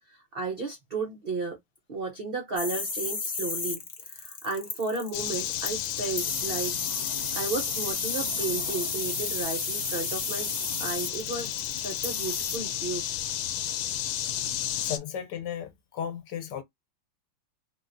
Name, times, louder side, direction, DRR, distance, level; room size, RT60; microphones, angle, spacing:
voice 1, 0.0-1.6 1.9-6.7 7.3-10.5 10.8-13.0, right 3 dB, 75° right, 0.5 m, -33 dB
sound 1, 2.6-12.6, left 4 dB, 50° left, 0.5 m, -33 dB
sound 2, 5.1-15.0, left 11 dB, 85° left, 1.4 m, -33 dB
voice 2, 14.8-16.6, left 8 dB, 70° left, 1.3 m, -35 dB
3.6 x 2.3 x 2.5 m
omnidirectional pair, 2.1 m